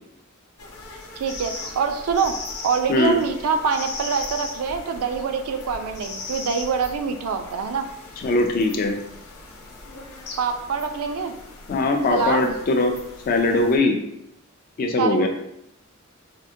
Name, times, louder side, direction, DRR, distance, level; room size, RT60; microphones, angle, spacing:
sound 1, 0.6-13.8, left 3 dB, 85° left, 0.6 m, -38 dB
voice 1, 1.2-2.4 2.6-7.9 10.4-11.3 12.1-12.6 15.0-15.3, right 5 dB, 75° right, 6 dB, 0.4 m, -25 dB
voice 2, 8.2-9.0 11.7-13.0 13.3-14.0 14.8-15.3, left 2 dB, 40° left, 3 dB, 0.3 m, -20 dB
3.6 x 2.1 x 2.6 m, 0.80 s
head